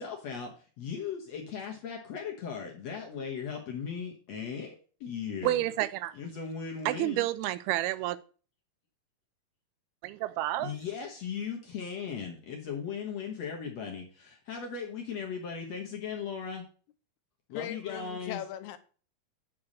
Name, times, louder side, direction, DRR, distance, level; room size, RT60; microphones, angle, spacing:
voice 1, 0.0-5.6 6.2-7.2 10.6-16.6 17.5-18.4, left 6 dB, 65° left, 1.7 m, -38 dB
voice 2, 5.4-6.1 6.9-8.2 10.0-10.8, right 15 dB, 85° right, 2.5 m, -30 dB
voice 3, 17.5-18.8, left 11 dB, 90° left, 2.7 m, -39 dB
8.6 x 4.7 x 6.3 m
omnidirectional pair, 4.5 m